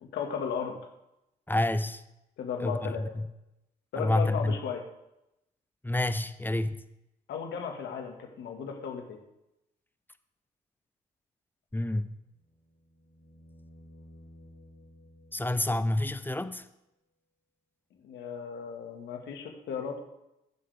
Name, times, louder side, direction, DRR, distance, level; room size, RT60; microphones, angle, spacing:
voice 1, 0.0-0.8 2.4-3.0 3.9-4.8 7.3-9.2 18.0-20.0, left 7 dB, 75° left, 3 dB, 1.9 m, -35 dB
voice 2, 1.5-2.0 2.6-3.3 4.0-4.5 5.8-6.8 11.7-12.1 15.3-16.7, left 1 dB, 10° left, 11 dB, 0.9 m, -28 dB
sound 1, 12.3-16.4 18.8-18.9, left 1 dB, 40° left, 2.9 m, -55 dB
17.0 x 7.5 x 3.5 m, 0.87 s
hypercardioid pair, 50°, 18 cm